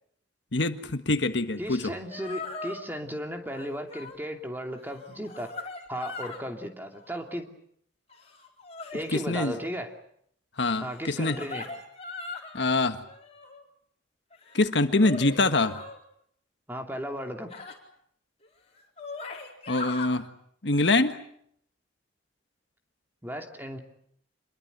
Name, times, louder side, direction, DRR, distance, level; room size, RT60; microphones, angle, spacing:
voice 1, 0.5-1.9 9.1-9.6 10.6-11.4 12.5-13.0 14.5-15.8 19.7-20.3 20.6-21.2, left 2 dB, 65° left, 8 dB, 1.6 m, -24 dB
voice 2, 1.6-5.5 5.9-7.5 8.9-9.9 10.8-11.6 16.7-17.5 23.2-23.8, equal, 10° right, 3 dB, 2.8 m, -35 dB
sound 1, 1.8-1.9 2.1-2.8 3.5-4.2 4.7-6.5 6.9-7.4 8.1-9.5 10.9-12.6 13.1-13.6 14.3-16.0 17.5-17.7 18.4-18.5 18.8-20.1 20.7-20.9, left 3 dB, 35° left, 4.3 m, -40 dB
27.0 x 22.5 x 8.1 m, 0.69 s
head